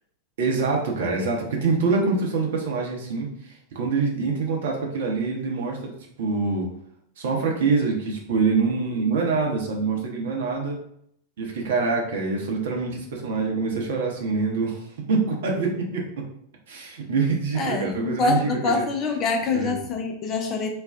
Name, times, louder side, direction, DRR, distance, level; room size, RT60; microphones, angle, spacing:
voice 1, 0.4-5.9 6.2-6.7 7.2-10.8 11.4-14.8 15.1-16.2 16.7-18.8 19.5-19.7, right 4 dB, 55° right, 0 dB, 0.7 m, -25 dB
voice 2, 17.6-20.7, left 4 dB, 30° left, 3 dB, 0.4 m, -25 dB
2.5 x 2.2 x 3.4 m, 0.69 s
figure-of-eight pair, 90°, 0 cm